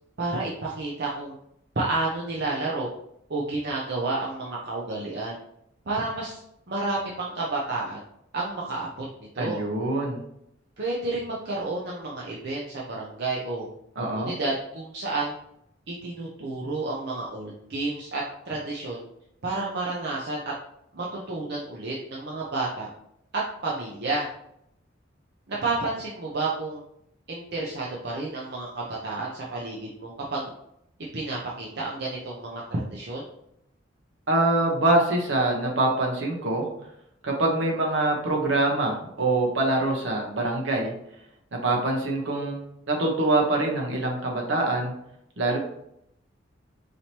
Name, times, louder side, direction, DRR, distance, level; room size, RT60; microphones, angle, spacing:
voice 1, 0.2-1.3 1.8-2.9 3.3-5.4 5.9-6.4 6.7-8.0 8.3-9.6 10.8-13.7 14.0-15.3 15.9-19.0 19.4-20.4 20.9-22.9 23.3-24.3 25.5-26.8 27.3-30.5 31.1-33.2, right 2 dB, 55° right, -4 dB, 0.7 m, -30 dB
voice 2, 9.4-10.2 14.0-14.3 34.3-36.7 37.2-40.9 41.5-42.6 42.9-44.9 45.4-45.6, right 2 dB, 75° right, 0 dB, 1.0 m, -24 dB
4.9 x 2.9 x 2.9 m, 0.76 s
head